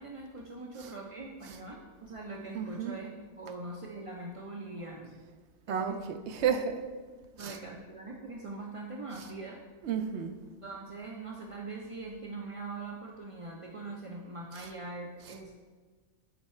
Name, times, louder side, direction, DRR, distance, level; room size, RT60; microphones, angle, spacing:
voice 1, 0.0-3.1 3.4-5.1 5.7-6.0 7.4-9.6 10.6-15.5, right 3 dB, 45° right, -1 dB, 0.4 m, -42 dB
voice 2, 2.5-3.0 5.7-6.8 7.4-7.6 9.8-10.4, right 7 dB, 60° right, 7 dB, 0.8 m, -32 dB
9.6 x 4.6 x 4.3 m, 1.4 s
omnidirectional pair, 1.5 m